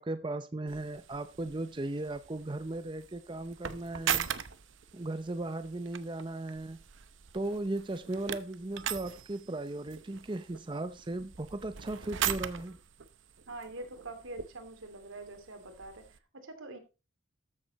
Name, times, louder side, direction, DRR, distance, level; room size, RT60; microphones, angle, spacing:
voice 1, 0.0-4.3 4.9-6.8 7.3-12.8, right 2 dB, 25° right, 0.6 m, -37 dB
sound 1, 0.7-16.2, right 9 dB, 70° right, 0.8 m, -41 dB
voice 2, 13.5-16.8, right 2 dB, 85° right, 2.8 m, -45 dB
13.5 x 7.4 x 4.1 m
head